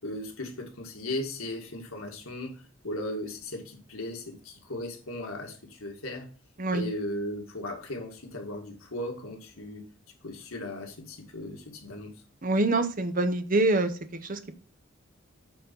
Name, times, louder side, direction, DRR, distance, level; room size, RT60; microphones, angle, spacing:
voice 1, 0.0-6.3 6.7-9.8 10.2-12.1, left 1 dB, 90° left, 1 dB, 2.2 m, -37 dB
voice 2, 12.4-13.9 14.2-14.5, right 2 dB, 40° right, 9 dB, 1.0 m, -25 dB
8.7 x 4.2 x 5.4 m, 0.37 s
head